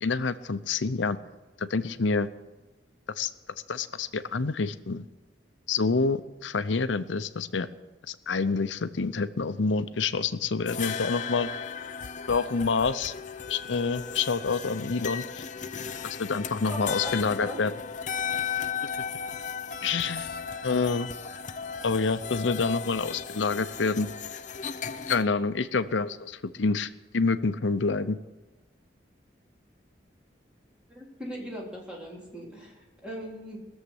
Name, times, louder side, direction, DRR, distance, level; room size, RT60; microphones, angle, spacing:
voice 1, 0.0-1.2 1.6-2.3 3.2-3.3 3.7-5.0 5.7-7.7 8.1-11.5 12.3-13.1 13.5-15.4 16.0-17.7 19.8-20.3 20.6-21.1 21.8-24.1 25.1-28.2, left 4 dB, 85° left, 12 dB, 0.7 m, -27 dB
sound 1, 10.7-25.2, left 7 dB, 40° left, 0.6 m, -35 dB
voice 2, 16.7-17.6 30.9-33.6, equal, 5° right, -4 dB, 3.6 m, -39 dB
20.0 x 7.3 x 8.1 m, 1.1 s
head